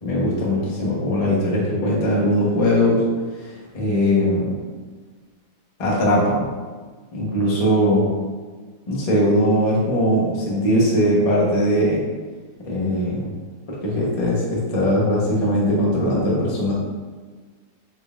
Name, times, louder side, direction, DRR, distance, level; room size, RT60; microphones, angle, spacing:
voice 1, 0.0-3.0 3.4-4.5 5.8-6.5 7.1-8.1 8.9-12.0 12.6-13.3 13.7-16.7, equal, 45° left, -5 dB, 0.4 m, -20 dB
3.7 x 3.7 x 2.3 m, 1.4 s
omnidirectional pair, 2.1 m